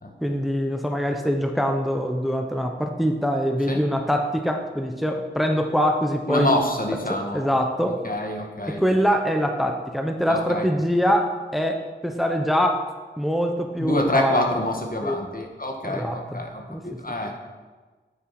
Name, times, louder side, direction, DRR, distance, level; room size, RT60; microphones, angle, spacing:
voice 1, 0.2-6.5 7.3-8.0 8.8-11.3 11.5-11.8 12.0-12.8 13.2-14.4 15.0-15.1 15.8-16.4 16.7-17.0, equal, ahead, 3 dB, 1.0 m, -23 dB
voice 2, 6.3-7.4 7.8-8.8 10.3-10.7 13.8-17.3, left 1 dB, 50° left, 2 dB, 1.9 m, -26 dB
9.2 x 8.9 x 5.9 m, 1.3 s
wide cardioid pair, 50°, 19 cm